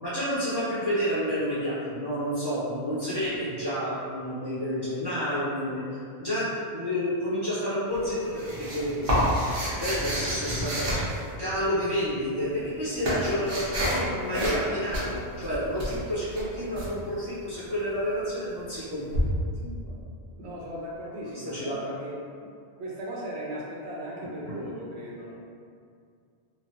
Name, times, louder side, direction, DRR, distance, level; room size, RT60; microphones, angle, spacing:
voice 1, 0.0-9.1 9.7-11.0 11.4-19.1 19.6-19.9 21.3-21.8, equal, 30° right, -11 dB, 0.6 m, -30 dB
sound 1, 7.9-11.8 12.5-14.1 14.3-14.7 14.9-16.9 19.1-19.2, equal, 55° right, 1.0 m, -29 dB
voice 2, 20.4-22.1 22.4-22.5 22.8-25.3, equal, 85° right, -4 dB, 0.9 m, -37 dB
2.9 x 2.2 x 2.8 m, 2.3 s
omnidirectional pair, 1.1 m